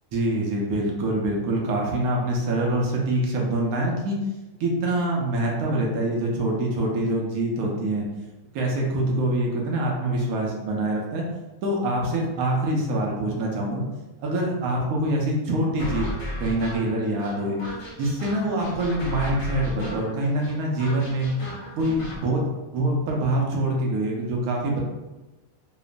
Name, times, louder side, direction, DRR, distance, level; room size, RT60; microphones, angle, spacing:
voice 1, 0.1-4.2 4.6-8.0 8.5-11.2 11.6-13.8 14.2-16.1 16.4-17.6 18.0-21.3 21.8-22.4 22.7-24.8, right 1 dB, 85° right, -1 dB, 1.1 m, -25 dB
sound 1, 15.8-22.2, equal, 55° left, 0.3 m, -34 dB
2.9 x 2.1 x 2.4 m, 1.1 s
omnidirectional pair, 1.5 m